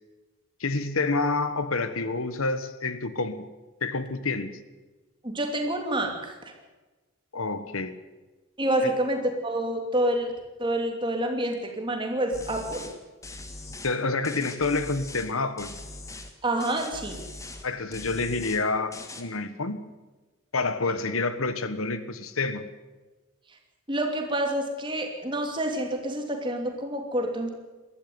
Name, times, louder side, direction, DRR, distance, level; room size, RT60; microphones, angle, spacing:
voice 1, 0.6-3.5 3.8-4.6 7.3-7.9 8.8-8.9 13.8-15.7 17.6-19.8 20.5-22.6, left 3 dB, 90° left, 12 dB, 1.4 m, -28 dB
voice 2, 5.2-6.5 8.6-10.3 10.6-12.9 16.4-17.2 23.9-27.5, right 1 dB, 25° right, 3 dB, 3.0 m, -28 dB
sound 1, 12.3-13.0 13.2-14.0 14.2-15.3 15.6-16.3 16.6-17.7 17.9-18.6 18.9-19.2, left 2 dB, 15° left, 1.6 m, -41 dB
20.5 x 13.5 x 9.6 m, 1.2 s
head